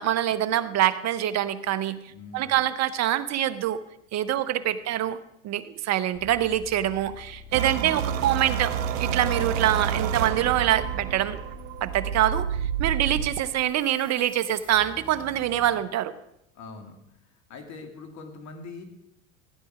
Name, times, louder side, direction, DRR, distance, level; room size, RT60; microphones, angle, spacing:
voice 1, 0.0-2.0 2.3-3.8 4.1-5.2 5.4-8.7 9.0-11.4 11.8-16.1, right 12 dB, 45° right, 13 dB, 1.0 m, -25 dB
voice 2, 2.1-2.5 7.7-7.9 16.5-17.0 17.3-18.8, left 4 dB, 50° left, 5 dB, 2.8 m, -43 dB
sound 1, 6.1-15.7, left 6 dB, 10° left, 3.2 m, -47 dB
sound 2, 7.5-13.4, right 8 dB, 80° right, 1.0 m, -29 dB
16.0 x 10.0 x 4.9 m, 0.82 s
hypercardioid pair, 90°, 37 cm